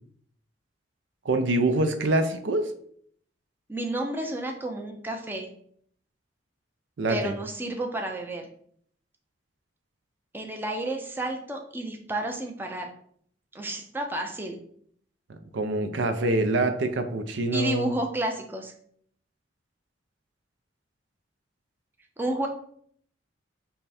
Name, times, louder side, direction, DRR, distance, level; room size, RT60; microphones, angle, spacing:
voice 1, 1.3-2.7 7.0-7.3 15.5-17.9, right 2 dB, 70° right, 8 dB, 0.5 m, -25 dB
voice 2, 3.7-5.5 7.1-8.5 10.3-12.9 13.5-14.6 17.5-18.7 22.2-22.5, right 1 dB, 10° right, 2 dB, 0.5 m, -31 dB
5.5 x 2.2 x 4.2 m, 0.63 s
head